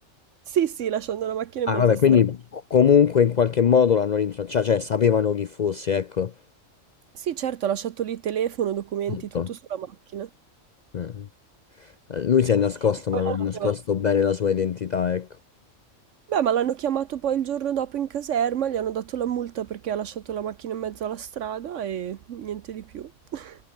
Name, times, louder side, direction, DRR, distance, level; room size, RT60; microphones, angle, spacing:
voice 1, 0.5-2.0 7.2-9.2 9.5-9.9 10.1-10.3 13.1-13.7 16.3-23.6, right 9 dB, 70° right, 1.1 m, -28 dB
voice 2, 1.7-6.3 9.1-9.5 10.9-11.3 11.8-15.3, left 7 dB, 65° left, 0.4 m, -22 dB
omnidirectional pair, 1.4 m